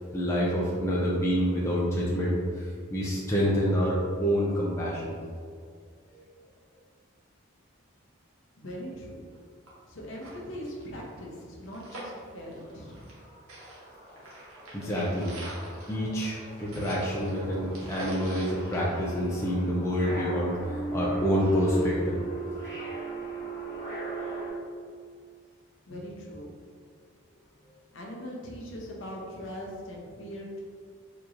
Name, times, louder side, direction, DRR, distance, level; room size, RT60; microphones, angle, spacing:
voice 1, 0.1-5.2 6.1-6.2 14.7-15.3 15.9-20.6 20.9-22.2, equal, 15° left, -5 dB, 0.4 m, -27 dB
voice 2, 8.6-9.2 9.8-13.0 25.9-26.5 27.9-30.6, equal, 65° left, -2 dB, 0.7 m, -40 dB
sound 1, 9.3-9.4 9.7-9.8 10.1-13.2 13.5-19.6 20.0-20.1, right 1 dB, 80° right, 1.0 m, -45 dB
sound 2, 12.6-12.7 13.0-24.5, right 2 dB, 35° right, 1.0 m, -38 dB
4.5 x 2.9 x 2.5 m, 2.1 s
head